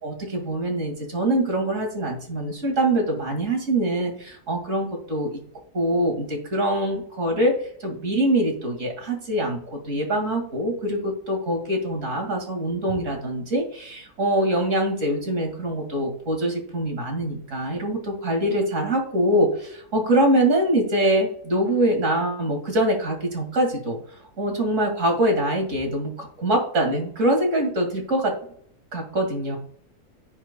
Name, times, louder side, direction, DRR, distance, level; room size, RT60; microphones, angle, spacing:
voice 1, 0.0-5.4 5.7-7.6 7.8-24.0 24.4-28.3 28.9-29.6, right 1 dB, 50° right, 2 dB, 2.5 m, -24 dB
16.0 x 5.6 x 2.2 m, 0.63 s
omnidirectional pair, 1.7 m